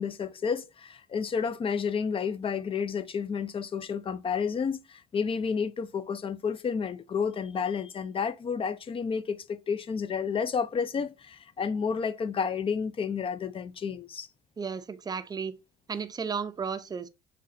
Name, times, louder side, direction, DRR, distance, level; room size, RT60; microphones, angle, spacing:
voice 1, 0.0-14.3, left 6 dB, 35° left, 0.4 m, -31 dB
voice 2, 14.6-15.6 15.9-17.1, right 6 dB, 25° right, 0.4 m, -34 dB
3.8 x 3.3 x 3.8 m
cardioid pair, 110°, 17 cm